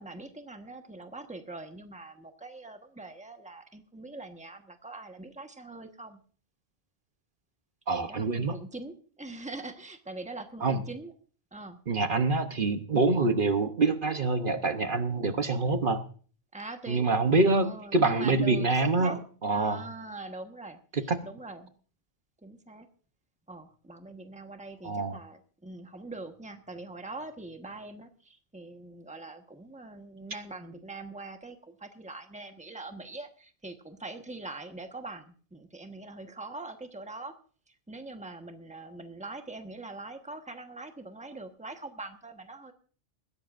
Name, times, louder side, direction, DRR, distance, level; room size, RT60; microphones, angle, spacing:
voice 1, 0.0-6.2 7.9-11.1 11.5-11.8 16.5-17.0 17.6-19.2 19.5-21.7 22.4-22.9 23.5-37.3 37.7-42.7, right 2 dB, 5° right, 5 dB, 1.2 m, -43 dB
voice 2, 7.9-8.5 10.6-10.8 11.9-16.0 16.9-19.2 19.4-19.8 21.1-21.2 24.8-25.2, right 3 dB, 55° right, 8 dB, 1.1 m, -26 dB
20.5 x 16.0 x 2.5 m, 0.42 s
omnidirectional pair, 1.1 m